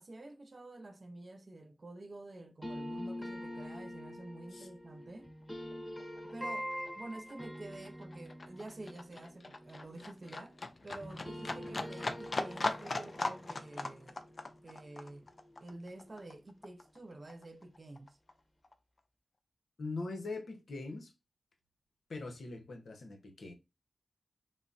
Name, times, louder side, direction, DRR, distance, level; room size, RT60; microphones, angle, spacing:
voice 1, 0.0-5.3 6.3-10.6 10.8-14.2 14.6-15.3 15.6-18.2, right 2 dB, 50° right, 0.5 m, -49 dB
sound 1, 2.6-10.7 11.0-15.9, equal, 15° left, 1.1 m, -45 dB
Livestock farm animals working animals, 5.6-5.7 6.0-17.0 17.3-18.3 18.6-18.7, left 2 dB, 50° left, 0.4 m, -40 dB
voice 2, 19.8-21.1 22.1-23.5, left 3 dB, 75° left, 0.8 m, -42 dB
3.8 x 2.0 x 2.5 m
cardioid pair, 40°, 0 cm